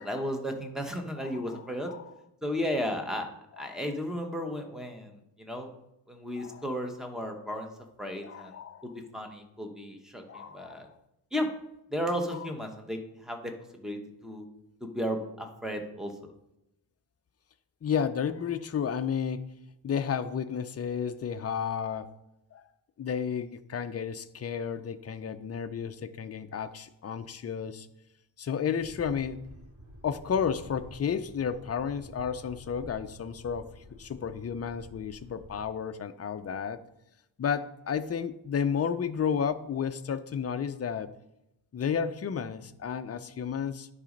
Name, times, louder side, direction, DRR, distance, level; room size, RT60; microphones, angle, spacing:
voice 1, 0.0-1.9 2.4-3.3 3.6-5.7 6.1-7.7 8.0-8.5 8.8-10.9 11.3-11.5 11.9-13.5 13.8-14.4 14.8-16.3, equal, ahead, 4 dB, 1.1 m, -34 dB
voice 2, 1.2-2.0 3.6-3.7 6.4-6.6 8.2-8.9 10.3-10.9 12.3-12.4 17.8-19.4 19.8-22.1 22.5-22.7 23.0-27.9 28.4-29.4 30.0-33.7 34.0-36.8 37.4-41.1 41.7-43.9, left 7 dB, 35° left, 10 dB, 0.5 m, -32 dB
sound 1, 28.8-35.6, equal, 40° right, 3.2 m, -50 dB
10.5 x 4.1 x 5.2 m, 0.87 s
wide cardioid pair, 115°, 47 cm